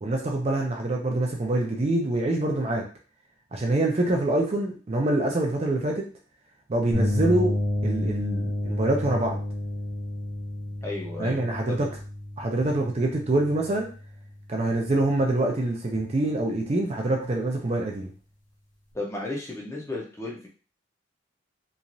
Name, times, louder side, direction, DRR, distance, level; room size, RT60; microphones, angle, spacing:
voice 1, 0.0-2.9 3.5-6.1 6.7-7.6 7.8-9.4 11.2-11.9 12.4-13.9 14.5-18.1, right 2 dB, 35° right, 1 dB, 0.4 m, -25 dB
sound 1, 6.9-14.6, left 1 dB, 75° left, 1.2 m, -30 dB
voice 2, 10.8-11.9 18.9-20.5, left 2 dB, 15° left, -2 dB, 0.6 m, -34 dB
3.0 x 2.4 x 2.6 m, 0.38 s
head